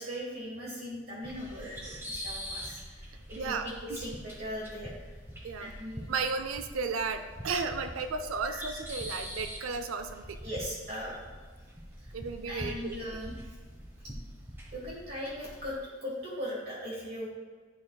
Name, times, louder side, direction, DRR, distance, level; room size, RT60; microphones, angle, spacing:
voice 1, 0.0-5.1 5.6-6.1 10.4-11.2 12.0-12.1 12.5-13.3 14.7-17.3, equal, 50° right, -6 dB, 1.3 m, -39 dB
sound 1, 1.2-15.8, equal, 10° right, 0.9 m, -44 dB
voice 2, 3.3-4.0 5.4-5.7 6.1-10.4 12.1-13.0, right 4 dB, 85° right, 8 dB, 0.4 m, -34 dB
9.8 x 4.6 x 2.3 m, 1.5 s
head